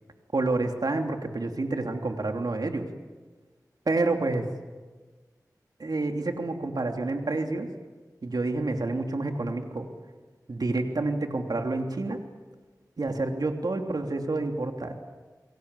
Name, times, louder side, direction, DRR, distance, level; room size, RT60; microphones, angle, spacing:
voice 1, 0.3-2.9 3.9-4.5 5.8-7.7 8.2-9.9 10.5-12.2 13.0-14.9, right 2 dB, 75° right, 4 dB, 3.1 m, -28 dB
29.5 x 22.5 x 8.4 m, 1.3 s
wide cardioid pair, 45°, 7 cm